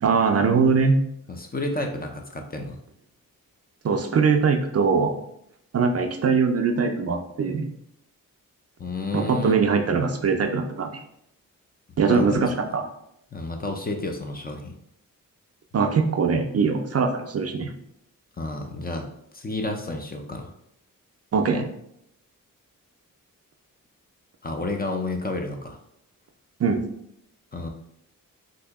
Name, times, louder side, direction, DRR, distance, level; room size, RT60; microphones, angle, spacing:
voice 1, 0.0-1.0 3.8-5.2 5.7-7.7 9.1-11.0 12.0-12.9 15.7-17.7 21.3-21.7 26.6-26.8, right 5 dB, 45° right, 5 dB, 0.4 m, -22 dB
voice 2, 1.3-2.8 8.8-9.6 12.0-12.5 13.3-14.7 18.4-19.1 19.3-20.5 24.4-25.8 27.5-27.7, left 2 dB, 25° left, 3 dB, 0.4 m, -31 dB
2.8 x 2.7 x 3.4 m, 0.75 s
wide cardioid pair, 90°, 34 cm